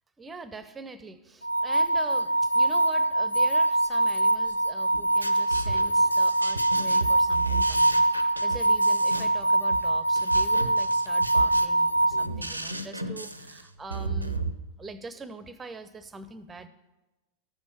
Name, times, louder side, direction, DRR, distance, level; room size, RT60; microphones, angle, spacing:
voice 1, 0.2-14.4 14.8-16.7, right 3 dB, 15° right, 14 dB, 0.6 m, -43 dB
sound 1, 1.4-12.3, right 2 dB, 85° left, 0.4 m, -23 dB
sound 2, 4.9-14.5, right 2 dB, 85° right, 0.6 m, -34 dB
13.5 x 6.2 x 6.9 m, 1.1 s
figure-of-eight pair, 90°, 0 cm